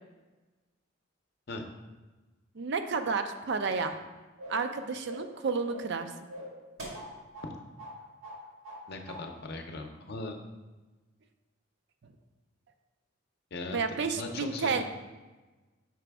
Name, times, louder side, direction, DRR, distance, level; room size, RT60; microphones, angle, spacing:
voice 1, 2.5-4.0 4.5-6.1 13.7-14.8, right 5 dB, 55° right, 7 dB, 0.4 m, -31 dB
sound 1, 4.4-4.7 5.0-5.4 5.7-6.0 6.3-7.5 7.8-8.0 8.2-8.8 9.1-9.2, equal, 85° right, 1.9 m, -43 dB
voice 2, 8.9-10.4 13.5-14.8, left 2 dB, 50° left, 4 dB, 0.6 m, -39 dB
6.0 x 5.0 x 3.4 m, 1.2 s
head